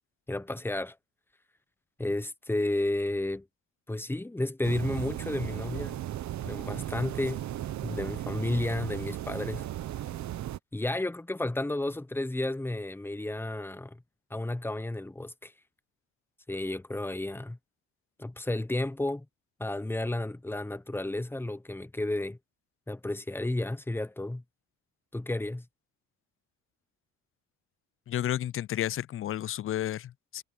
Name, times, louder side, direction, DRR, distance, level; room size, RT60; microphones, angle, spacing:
voice 1, 0.3-1.0 2.0-3.5 3.9-6.0 6.4-7.4 7.8-9.7 10.7-14.0 14.3-15.5 16.5-17.6 18.2-19.2 19.6-22.4 22.9-24.4 25.1-25.6, left 2 dB, 5° left, 0.9 m, -32 dB
sound 1, 4.6-10.6, right 12 dB, 65° right, 1.0 m, -36 dB
voice 2, 28.1-30.4, left 12 dB, 45° left, 0.4 m, -32 dB
cardioid pair, 90°, 30 cm